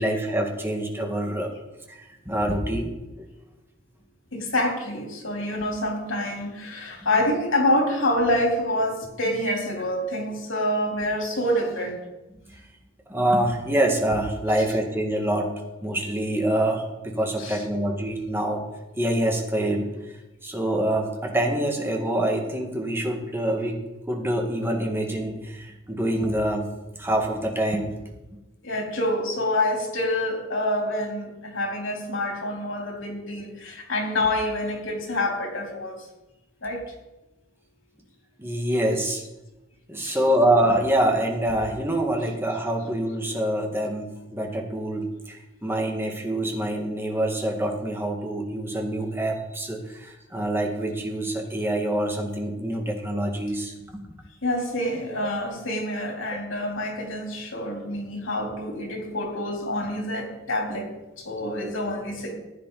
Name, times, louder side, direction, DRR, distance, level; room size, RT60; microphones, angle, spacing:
voice 1, 0.0-1.5 1.9-2.9 13.1-15.5 15.8-18.6 19.0-19.9 20.4-23.8 24.1-26.7 27.0-27.9 30.8-31.0 38.4-39.2 39.9-53.7 55.2-55.3, right 1 dB, 10° right, 1 dB, 2.0 m, -25 dB
voice 2, 4.3-12.0 17.4-17.6 28.6-36.0 36.6-36.8 40.0-40.2 54.4-60.9 61.2-62.3, left 1 dB, 90° left, 0 dB, 3.7 m, -27 dB
15.0 x 10.0 x 4.0 m, 1.0 s
head